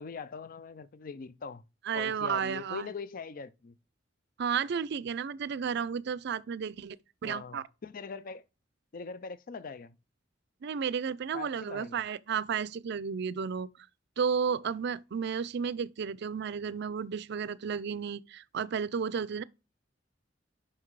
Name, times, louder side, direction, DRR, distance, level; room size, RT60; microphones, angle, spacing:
voice 1, 0.0-1.6 1.9-3.7 7.2-8.4 8.9-10.0 11.3-12.0, left 5 dB, 45° left, 0.5 m, -42 dB
voice 2, 1.9-2.9 4.4-7.0 7.2-7.6 10.6-13.7 14.2-19.4, right 6 dB, 60° right, 0.4 m, -32 dB
5.8 x 5.4 x 4.7 m
head